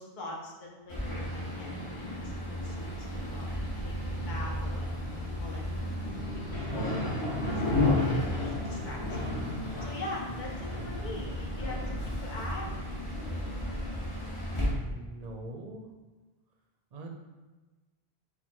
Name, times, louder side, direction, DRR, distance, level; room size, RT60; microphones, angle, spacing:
voice 1, 0.0-3.7 4.0-4.9 5.4-5.8 6.3-9.4 9.8-12.7, left 1 dB, 50° left, -2 dB, 0.9 m, -43 dB
sound 1, 0.9-14.7, left 1 dB, 30° left, 1.3 m, -33 dB
sound 2, 3.9-9.8, left 3 dB, 80° left, 0.9 m, -44 dB
voice 2, 14.7-15.8 16.9-17.1, right 2 dB, 50° right, 2 dB, 0.6 m, -42 dB
4.5 x 2.3 x 4.3 m, 1.2 s
omnidirectional pair, 1.0 m